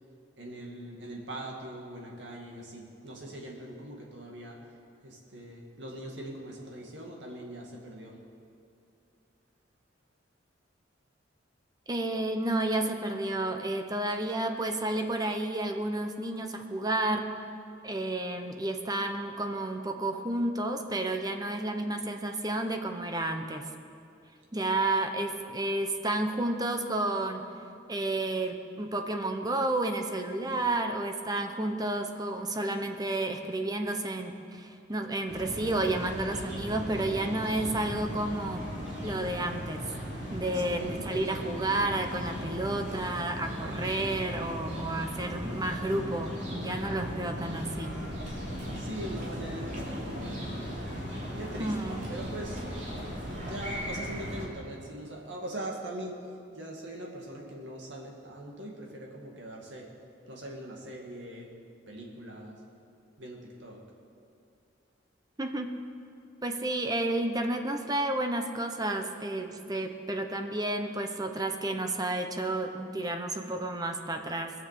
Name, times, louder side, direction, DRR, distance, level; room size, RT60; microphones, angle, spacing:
voice 1, 0.4-4.6 5.0-8.2 40.8-41.2 48.8-50.6 51.4-52.6 53.3-56.2 56.5-59.9 60.3-61.5 61.9-62.6 63.2-63.8, right 1 dB, 65° right, -1 dB, 2.4 m, -41 dB
voice 2, 11.9-17.3 17.8-23.6 24.5-27.4 27.9-38.6 39.0-39.8 40.3-47.9 51.6-52.0 65.4-65.7 66.4-74.5, right 2 dB, 20° right, 5 dB, 0.9 m, -31 dB
sound 1, 35.3-54.5, equal, 45° right, 3.2 m, -37 dB
21.0 x 7.6 x 6.9 m, 2.5 s
head